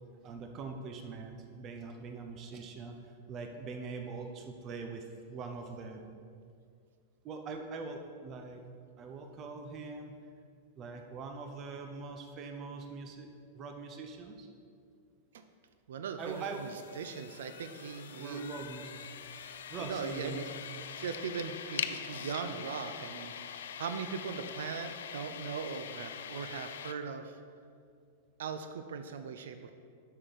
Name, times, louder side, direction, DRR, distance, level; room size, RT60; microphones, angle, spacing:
voice 1, 0.2-6.0 7.2-8.6 9.0-10.1 10.8-14.5 16.2-16.6 18.2-19.1 19.7-20.5, right 4 dB, 30° right, 4 dB, 0.7 m, -43 dB
voice 2, 15.9-18.6 19.3-20.4 21.0-27.4 28.4-29.7, right 6 dB, 85° right, 9 dB, 0.4 m, -40 dB
sound 1, 16.2-26.9, left 8 dB, 85° left, 0.4 m, -43 dB
7.8 x 6.4 x 4.0 m, 2.3 s
supercardioid pair, 140°, 0 cm